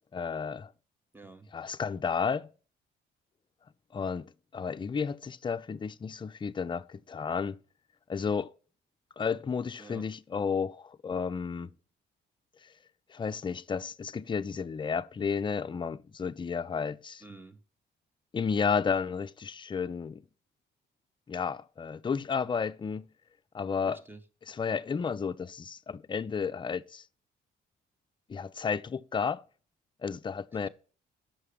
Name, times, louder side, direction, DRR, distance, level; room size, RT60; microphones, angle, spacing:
voice 1, 0.1-0.7 1.5-2.5 3.9-7.6 8.1-8.5 9.2-11.7 12.6-12.7 13.1-17.2 18.3-20.2 21.3-23.1 23.5-24.0 24.5-27.0 28.3-29.4 30.0-30.7, left 6 dB, 25° left, 0.4 m, -32 dB
voice 2, 1.1-1.5 9.8-10.1 17.2-17.6 23.9-24.2 30.5-30.7, right 3 dB, 10° right, 0.8 m, -49 dB
5.9 x 5.6 x 4.8 m
cardioid pair, 90°, 20 cm